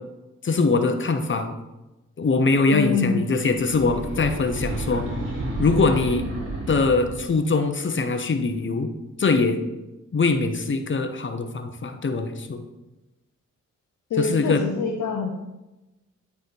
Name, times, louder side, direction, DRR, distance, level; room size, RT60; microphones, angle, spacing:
voice 1, 0.4-1.6 2.2-5.1 5.6-6.2 6.7-8.9 9.2-9.6 10.1-12.6 14.2-14.6, left 3 dB, 40° left, 7 dB, 0.9 m, -22 dB
voice 2, 2.7-3.2 4.9-5.0 14.1-15.3, left 5 dB, 70° left, 3 dB, 0.7 m, -25 dB
sound 1, 3.5-7.4, right 2 dB, 40° right, 2.7 m, -31 dB
9.3 x 3.5 x 4.5 m, 1.0 s
cardioid pair, 55°, 31 cm